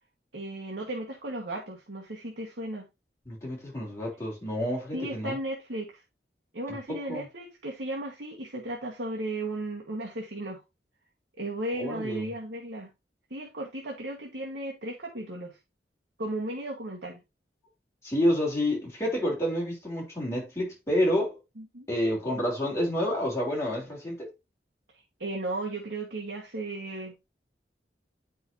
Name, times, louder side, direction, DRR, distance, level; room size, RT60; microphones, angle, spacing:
voice 1, 0.3-2.8 4.9-6.0 6.5-10.6 11.4-12.9 13.3-15.6 16.2-17.2 21.6-21.9 25.2-27.3, right 1 dB, 85° right, 1.6 m, -35 dB
voice 2, 3.3-5.4 6.7-7.3 11.8-12.3 18.0-21.4 21.9-24.3, equal, 15° left, 3.6 m, -29 dB
9.6 x 5.4 x 2.7 m
head